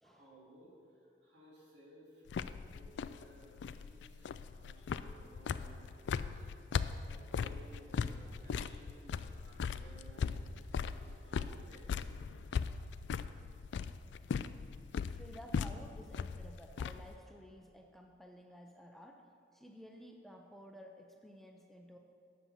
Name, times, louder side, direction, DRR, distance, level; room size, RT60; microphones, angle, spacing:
voice 1, 0.0-2.3 2.7-11.9, right 1 dB, 85° right, -5 dB, 2.8 m, -59 dB
sound 1, 2.3-17.2, left 6 dB, 90° left, 0.3 m, -39 dB
voice 2, 15.0-19.3 19.5-22.0, equal, ahead, 3 dB, 0.5 m, -54 dB
10.0 x 7.1 x 5.6 m, 2.5 s
head